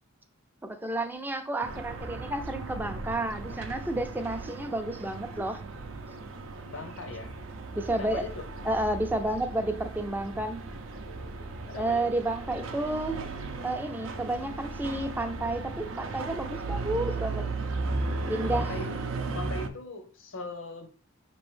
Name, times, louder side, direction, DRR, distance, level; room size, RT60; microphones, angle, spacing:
voice 1, 0.6-5.6 7.7-8.3 8.6-10.6 11.8-13.2 13.6-17.5 18.3-18.8, right 1 dB, 10° right, 0.4 m, -31 dB
sound 1, 1.6-19.7, right 3 dB, 70° right, 0.5 m, -36 dB
voice 2, 6.6-7.3 7.9-8.4 11.7-12.1 18.5-19.1 19.3-20.9, left 3 dB, 70° left, 0.8 m, -39 dB
5.2 x 3.0 x 3.1 m
head